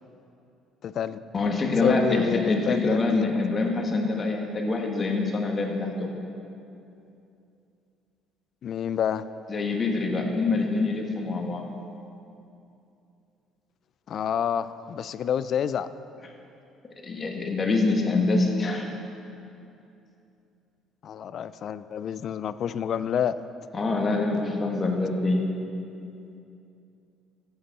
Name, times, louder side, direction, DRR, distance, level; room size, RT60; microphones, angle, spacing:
voice 1, 0.8-1.2 1.8-3.6 8.6-9.2 14.1-15.9 21.0-23.4, left 8 dB, 55° left, 14 dB, 0.4 m, -29 dB
voice 2, 1.3-6.1 9.5-11.6 17.0-18.9 23.7-25.5, left 3 dB, 35° left, 1 dB, 1.7 m, -25 dB
14.0 x 8.0 x 4.2 m, 2.7 s
cardioid pair, 95°, 0 cm